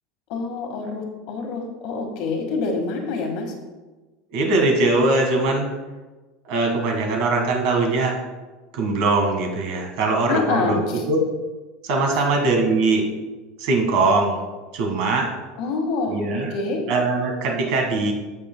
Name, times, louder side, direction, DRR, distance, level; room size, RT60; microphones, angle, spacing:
voice 1, 0.3-3.5 10.3-11.0 15.6-16.8, left 4 dB, 50° left, 3 dB, 1.7 m, -26 dB
voice 2, 4.3-5.7 6.4-8.1 8.7-11.2 11.8-13.0 13.6-14.4 14.7-15.3 16.1-16.5 16.9-18.1, right 3 dB, 55° right, 2 dB, 1.6 m, -21 dB
16.0 x 6.0 x 2.2 m, 1.2 s
supercardioid pair, 170°, 0 cm